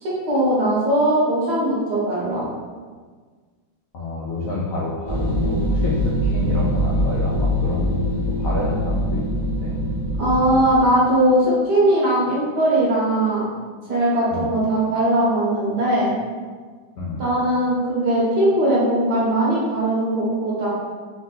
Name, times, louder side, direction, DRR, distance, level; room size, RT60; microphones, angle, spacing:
voice 1, 0.0-2.5 10.2-13.5 13.9-16.1 17.2-20.7, right 1 dB, 65° right, -6 dB, 1.5 m, -19 dB
voice 2, 3.9-9.8 14.3-14.5 17.0-17.2, left 2 dB, 75° left, -6 dB, 0.7 m, -29 dB
sound 1, 5.1-10.7, equal, 45° right, 0.4 m, -23 dB
3.6 x 2.6 x 3.8 m, 1.5 s
omnidirectional pair, 2.1 m